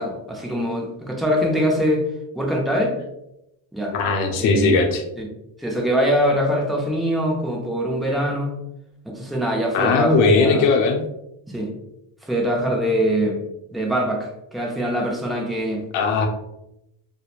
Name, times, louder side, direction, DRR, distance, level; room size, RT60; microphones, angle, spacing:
voice 1, 0.0-2.0 2.4-2.9 3.7-3.9 4.4-4.7 5.2-5.3 5.6-8.5 9.1-10.7 11.5-11.7 12.3-13.4 13.7-15.8, equal, ahead, -1 dB, 0.4 m, -23 dB
voice 2, 3.9-5.0 9.7-11.0 15.9-16.3, left 4 dB, 90° left, 3 dB, 0.6 m, -18 dB
2.9 x 2.1 x 2.3 m, 0.85 s
cardioid pair, 100°, 47 cm